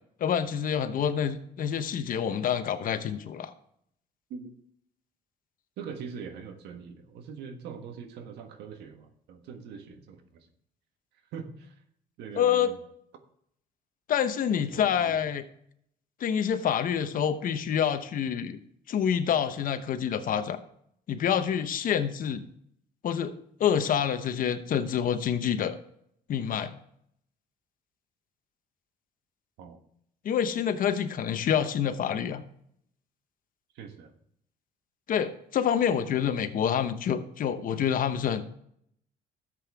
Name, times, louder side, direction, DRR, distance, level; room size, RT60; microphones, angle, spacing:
voice 1, 0.2-3.5 12.4-12.7 14.1-15.4 16.2-18.6 18.9-20.6 21.1-22.4 23.0-23.3 23.6-25.8 26.3-26.7 30.2-32.4 35.1-38.4, left 8 dB, 55° left, 10 dB, 1.0 m, -27 dB
voice 2, 5.8-10.5 11.3-11.8 12.2-12.8 14.7-15.3 29.6-29.8 33.7-34.1, right 6 dB, 85° right, 7 dB, 1.5 m, -42 dB
12.5 x 7.8 x 3.5 m, 0.70 s
cardioid pair, 110°, 17 cm